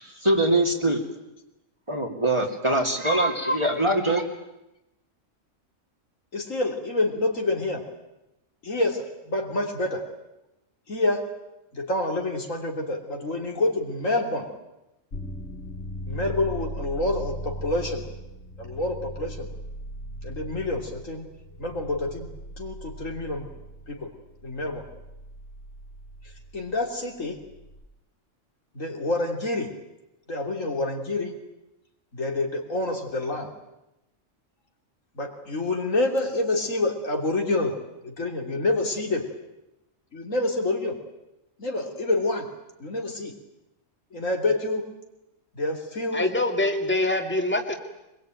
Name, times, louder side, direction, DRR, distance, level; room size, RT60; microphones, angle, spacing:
voice 1, 0.2-1.0 1.9-4.2, right 1 dB, 20° right, 2 dB, 2.7 m, -23 dB
voice 2, 6.3-7.8 8.6-10.0 10.9-11.2 11.7-14.5 16.0-18.0 18.6-19.5 20.2-21.3 21.6-22.3 22.6-23.5 23.9-24.1 24.4-24.8 26.5-27.4 28.7-29.7 30.3-31.3 32.1-33.5 35.1-37.7 38.0-39.2 40.1-41.0 41.6-42.5 42.8-43.3 44.1-44.9 45.5-46.2, left 2 dB, 85° left, 3 dB, 3.6 m, -27 dB
sound 1, 15.1-27.8, right 1 dB, 55° left, 2.7 m, -39 dB
voice 3, 46.1-47.8, left 2 dB, 10° left, 4 dB, 2.3 m, -24 dB
24.0 x 21.5 x 9.2 m, 0.92 s
omnidirectional pair, 1.3 m